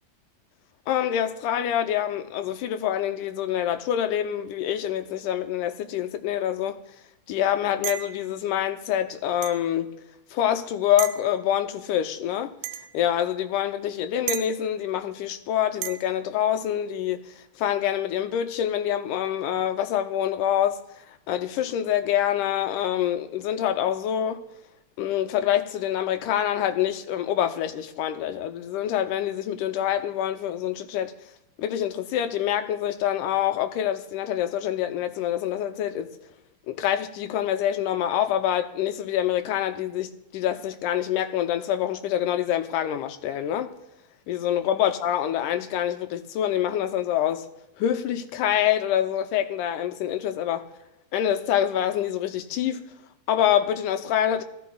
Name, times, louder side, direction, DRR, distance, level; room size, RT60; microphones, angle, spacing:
voice 1, 0.9-6.8 7.3-9.9 10.3-12.5 12.9-20.8 21.3-24.4 25.0-31.1 31.6-36.1 36.7-43.7 44.3-47.5 47.8-50.7 51.1-52.9 53.3-54.4, left 10 dB, 90° left, 2.2 m, -26 dB
sound 1, 7.8-8.2 9.4-9.6 11.0-11.2 12.6-12.9 14.3-14.5 15.8-16.0, right 12 dB, 90° right, 2.2 m, -32 dB
19.0 x 14.5 x 2.3 m
omnidirectional pair, 3.6 m